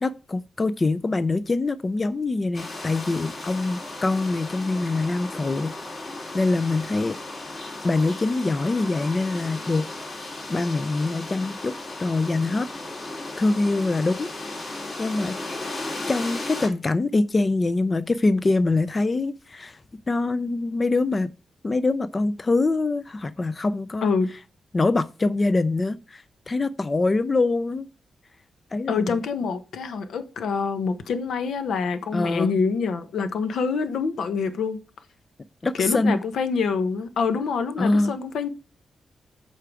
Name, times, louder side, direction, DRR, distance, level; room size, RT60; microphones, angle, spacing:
voice 1, 0.0-5.7 6.3-7.2 7.8-9.9 10.1-11.7 12.0-12.7 13.4-14.3 14.6-15.4 16.1-19.8 20.1-21.3 21.6-24.1 24.7-27.9 28.7-29.0 32.1-32.6 35.6-36.2 37.8-38.1, left 3 dB, 20° left, 0.4 m, -24 dB
sound 1, 2.5-16.7, left 2 dB, 45° left, 3.1 m, -35 dB
voice 2, 28.9-34.8 35.8-38.5, left 5 dB, 75° left, 1.1 m, -26 dB
8.4 x 5.7 x 4.8 m
wide cardioid pair, 180°, 0 cm